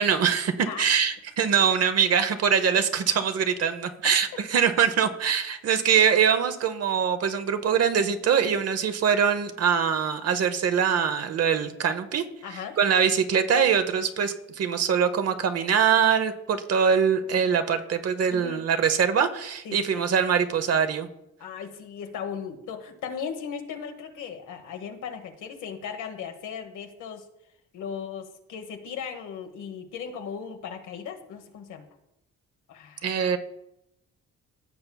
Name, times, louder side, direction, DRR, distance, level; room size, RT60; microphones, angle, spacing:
voice 1, 0.0-12.2 12.8-21.1 33.0-33.4, right 7 dB, 55° right, 9 dB, 0.9 m, -23 dB
voice 2, 12.4-12.8 18.3-18.6 19.6-20.0 21.4-27.2 27.7-31.9 32.7-33.3, left 7 dB, 80° left, 5 dB, 1.2 m, -37 dB
15.5 x 6.8 x 2.3 m, 0.84 s
cardioid pair, 90°, 30 cm